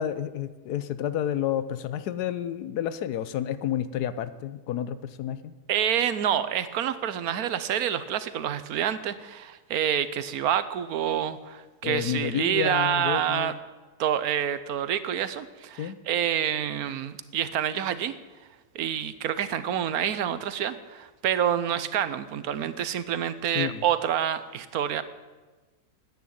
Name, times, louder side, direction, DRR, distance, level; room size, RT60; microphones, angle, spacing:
voice 1, 0.0-5.5 11.8-13.6 15.8-16.0 23.5-23.8, left 10 dB, 90° left, 14 dB, 1.3 m, -30 dB
voice 2, 5.7-13.5 14.0-18.1 18.7-25.0, right 9 dB, 70° right, 13 dB, 1.2 m, -27 dB
10.5 x 9.6 x 9.3 m, 1.3 s
omnidirectional pair, 1.6 m